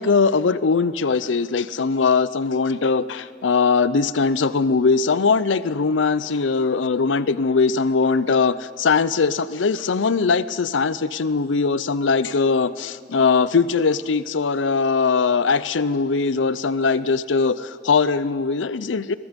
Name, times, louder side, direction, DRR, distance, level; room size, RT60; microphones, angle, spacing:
voice 1, 0.0-19.2, left 4 dB, 75° left, 16 dB, 0.6 m, -20 dB
22.5 x 22.0 x 5.2 m, 2.1 s
head